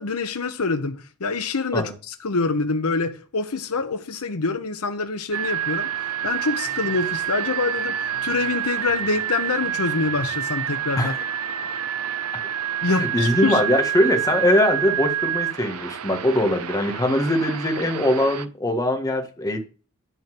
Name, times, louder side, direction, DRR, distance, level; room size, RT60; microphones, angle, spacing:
voice 1, 0.0-5.9 6.2-11.1 12.8-13.6, left 3 dB, 75° left, 0.9 m, -26 dB
sound 1, 5.3-18.5, right 10 dB, 75° right, 0.7 m, -28 dB
voice 2, 10.9-11.3 12.9-19.6, left 1 dB, 15° left, 1.7 m, -22 dB
11.5 x 4.4 x 7.7 m
head